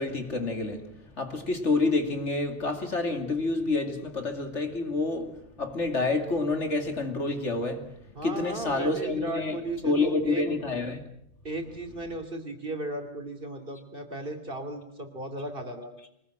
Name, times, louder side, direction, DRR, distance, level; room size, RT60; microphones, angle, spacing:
voice 1, 0.0-7.9 8.2-9.6 9.8-11.0, left 3 dB, 60° left, 2.9 m, -28 dB
voice 2, 8.1-10.4 11.4-15.9, right 2 dB, 40° right, 3.1 m, -36 dB
24.5 x 20.0 x 7.8 m
omnidirectional pair, 1.4 m